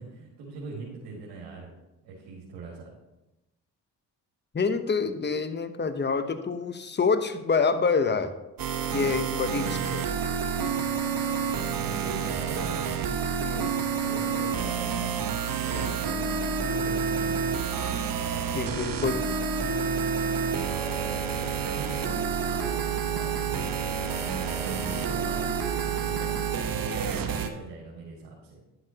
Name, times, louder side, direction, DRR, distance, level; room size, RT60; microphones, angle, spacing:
voice 1, 0.0-1.7 2.0-2.9 11.7-13.0 14.0-17.8 18.2-18.5 20.6-21.9 22.3-28.6, right 3 dB, 90° right, -4 dB, 2.0 m, -42 dB
voice 2, 4.5-8.3 8.9-10.1 13.4-13.7 18.5-19.2, left 5 dB, 25° left, 10 dB, 0.9 m, -27 dB
sound 1, 8.6-27.5, right 6 dB, 55° right, 1.1 m, -29 dB
11.0 x 7.9 x 2.9 m, 0.97 s
supercardioid pair, 65°, 40 cm